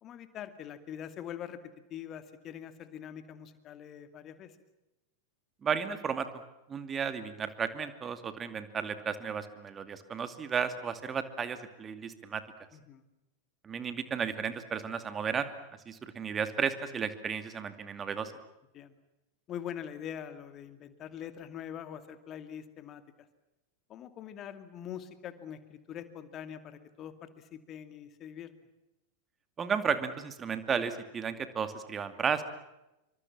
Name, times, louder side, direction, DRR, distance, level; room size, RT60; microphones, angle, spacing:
voice 1, 0.0-4.6 12.7-13.0 18.7-19.0 19.5-23.3 23.9-28.5, left 9 dB, 30° left, 10 dB, 2.5 m, -43 dB
voice 2, 5.6-6.3 6.7-12.4 13.6-15.5 15.9-18.3 29.6-32.4, right 6 dB, 20° right, 10 dB, 2.5 m, -33 dB
27.0 x 24.5 x 7.5 m, 0.95 s
figure-of-eight pair, 90°, 0 cm